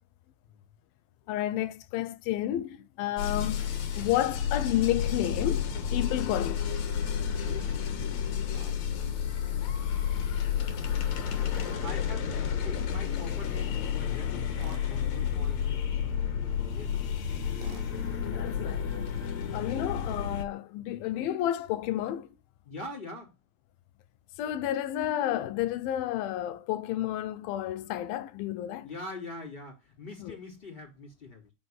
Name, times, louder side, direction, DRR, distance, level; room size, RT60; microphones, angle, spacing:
voice 1, 1.3-6.6 18.3-18.9 19.5-22.3 24.4-28.9 30.2-30.3, left 13 dB, 75° left, 2.3 m, -31 dB
sound 1, 3.2-20.4, left 8 dB, 60° left, 2.1 m, -31 dB
voice 2, 7.4-8.2 11.0-16.1 16.6-17.2 20.9-21.0 22.6-23.3 28.8-31.5, left 2 dB, 15° left, 4.1 m, -45 dB
Tools, 8.5-8.8 11.5-11.8 14.6-14.9 17.6-17.9, right 9 dB, 65° right, 2.7 m, -48 dB
9.9 x 5.7 x 8.0 m
omnidirectional pair, 4.6 m